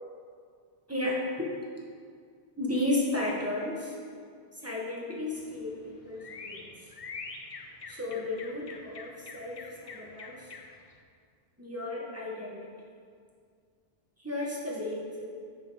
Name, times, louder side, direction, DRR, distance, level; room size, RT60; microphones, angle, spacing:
voice 1, 0.9-1.5 2.6-4.0 4.5-6.7 7.9-10.5 11.6-12.7 14.2-15.3, left 2 dB, 15° right, -5 dB, 1.0 m, -33 dB
sound 1, 5.3-10.9, left 4 dB, 45° left, 0.5 m, -45 dB
6.7 x 5.1 x 4.6 m, 2.2 s
omnidirectional pair, 1.1 m